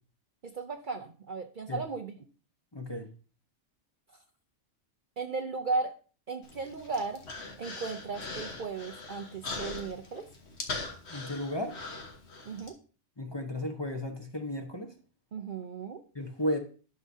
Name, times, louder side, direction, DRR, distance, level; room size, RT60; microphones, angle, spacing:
voice 1, 0.4-2.2 5.2-5.9 6.3-7.2 7.6-10.3 12.5-12.7 15.3-16.0, right 4 dB, 50° right, 4 dB, 0.7 m, -35 dB
voice 2, 2.7-3.1 11.1-11.8 13.2-14.9 16.1-16.6, left 1 dB, 25° left, 3 dB, 0.9 m, -34 dB
Human voice, 6.4-12.7, left 3 dB, 60° left, 1.5 m, -41 dB
11.0 x 6.1 x 2.7 m, 0.38 s
omnidirectional pair, 1.3 m